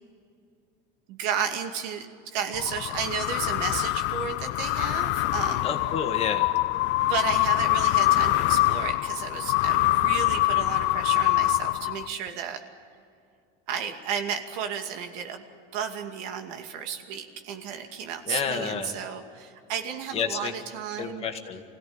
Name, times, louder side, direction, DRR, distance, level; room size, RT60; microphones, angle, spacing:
voice 1, 1.1-5.7 7.0-12.6 13.7-15.4 15.7-21.3, right 8 dB, 85° right, 5 dB, 2.5 m, -33 dB
sound 1, 2.5-12.3, left 18 dB, 65° left, 0.6 m, -24 dB
voice 2, 5.6-6.5 18.3-18.9 20.1-20.5 21.0-21.6, left 6 dB, 30° left, 5 dB, 1.8 m, -30 dB
25.0 x 17.0 x 8.9 m, 2.4 s
cardioid pair, 165°, 20 cm